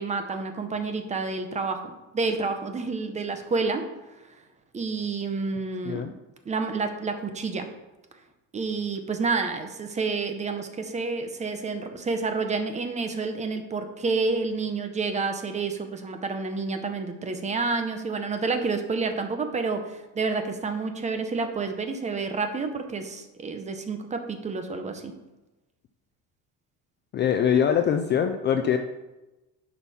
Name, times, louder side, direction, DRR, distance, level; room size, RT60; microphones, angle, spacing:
voice 1, 0.0-3.9 4.7-6.1 6.5-7.7 8.5-25.1, right 4 dB, 20° right, 6 dB, 0.7 m, -29 dB
voice 2, 27.1-28.8, left 8 dB, 30° left, 7 dB, 0.4 m, -23 dB
10.5 x 5.5 x 4.2 m, 1.0 s
cardioid pair, 160°, 37 cm